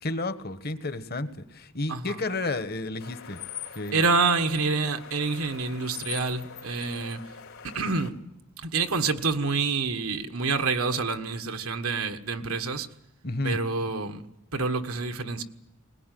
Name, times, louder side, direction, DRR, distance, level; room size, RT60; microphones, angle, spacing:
voice 1, 0.0-3.4 3.7-4.0 13.2-13.6, left 2 dB, 45° left, 11 dB, 1.2 m, -31 dB
voice 2, 1.9-2.2 3.9-7.2 7.7-8.2 8.6-12.9 13.4-14.2 14.5-15.4, right 4 dB, 90° right, 6 dB, 1.5 m, -27 dB
sound 1, 3.0-8.1, left 8 dB, 85° left, 3.6 m, -42 dB
20.5 x 19.5 x 9.2 m, 0.88 s
head